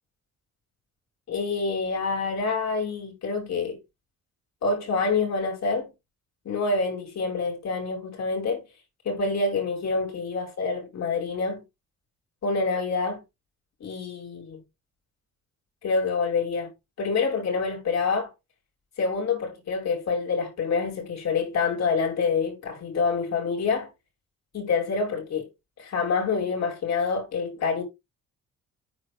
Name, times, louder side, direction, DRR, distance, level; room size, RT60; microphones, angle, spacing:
voice 1, 1.3-3.8 4.6-5.9 6.5-8.6 9.0-11.6 12.4-13.2 13.8-14.6 15.8-16.7 17.0-18.3 19.0-23.9 24.5-25.5 25.8-27.8, left 4 dB, 60° left, 5.3 m, -27 dB
9.5 x 4.7 x 3.5 m
cardioid pair, 90°, 30 cm